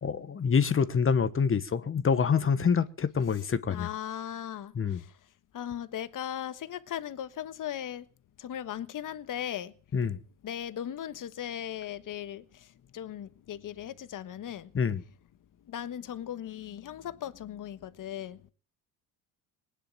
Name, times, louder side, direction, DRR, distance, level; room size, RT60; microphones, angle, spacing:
voice 1, 0.0-3.9 4.7-5.0 9.9-10.2 14.7-15.0, left 6 dB, 30° left, 1.2 m, -26 dB
voice 2, 3.7-5.2 5.5-8.1 8.4-9.7 10.4-14.7 15.6-18.5, left 10 dB, 45° left, 1.4 m, -38 dB
19.5 x 10.0 x 7.2 m
supercardioid pair, 80°, 42 cm